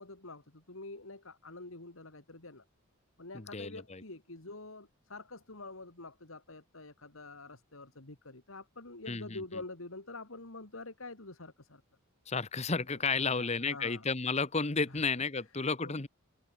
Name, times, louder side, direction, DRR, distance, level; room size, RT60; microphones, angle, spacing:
voice 1, 0.0-2.6 3.2-11.8 12.9-14.1 14.8-15.0 15.8-16.0, left 2 dB, 75° left, 2.8 m, -47 dB
voice 2, 3.3-4.0 9.1-9.4 12.3-16.1, left 4 dB, 30° left, 1.1 m, -32 dB
open air
head